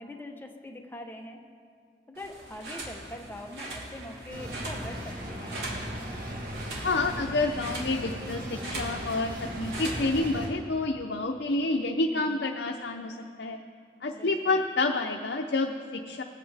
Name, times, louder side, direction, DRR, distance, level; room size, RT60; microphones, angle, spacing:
voice 1, 0.0-1.4 2.1-5.6 12.1-12.5 14.1-14.6, left 1 dB, 10° left, 3 dB, 0.9 m, -43 dB
sound 1, 2.2-10.3, right 1 dB, 70° right, 2.8 m, -40 dB
sound 2, 4.3-10.5, equal, 55° right, 1.8 m, -38 dB
voice 2, 6.8-13.6 14.0-16.2, left 2 dB, 65° left, 3 dB, 0.6 m, -29 dB
21.5 x 8.4 x 3.5 m, 2.3 s
head